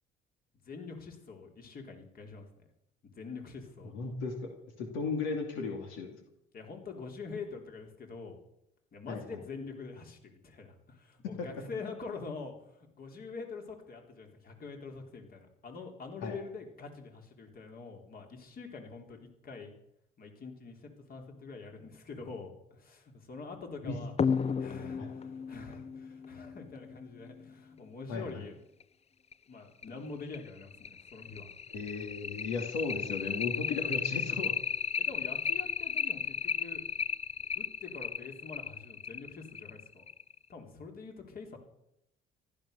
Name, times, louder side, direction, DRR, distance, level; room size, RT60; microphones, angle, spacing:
voice 1, 0.6-2.5 3.1-3.9 6.5-8.4 8.9-19.7 20.2-24.1 24.4-28.6 29.5-31.5 33.9-34.0 35.0-36.8 37.6-40.0 40.5-41.6, left 4 dB, 50° left, 3 dB, 3.9 m, -45 dB
voice 2, 3.9-4.5 4.8-6.1 9.1-9.4 11.4-11.5 16.2-16.4 23.8-24.0 25.0-25.1 28.1-28.4 31.7-34.5, left 4 dB, 85° left, 2 dB, 2.7 m, -35 dB
sound 1, 24.2-27.3 28.8-28.9 29.3-29.4 29.8-29.9 30.3-40.4, left 6 dB, 30° left, 0.6 m, -34 dB
15.0 x 12.5 x 6.8 m, 0.81 s
supercardioid pair, 75°, 20 cm